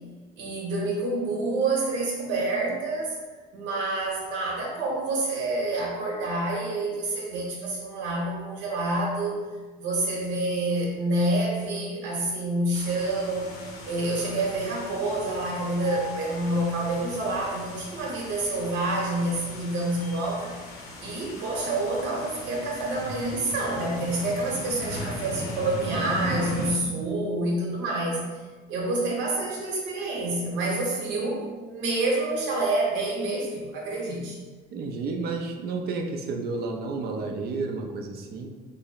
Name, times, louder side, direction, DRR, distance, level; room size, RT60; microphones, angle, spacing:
voice 1, 0.4-3.1 3.5-9.4 9.8-13.5 13.8-20.5 21.0-28.3 28.7-34.4, right 2 dB, 80° right, -2 dB, 1.0 m, -28 dB
sound 1, 12.7-26.7, left 1 dB, 85° left, 0.7 m, -38 dB
voice 2, 34.7-38.5, right 3 dB, 55° right, 3 dB, 0.5 m, -31 dB
3.3 x 2.1 x 3.8 m, 1.4 s
cardioid pair, 100°, 19 cm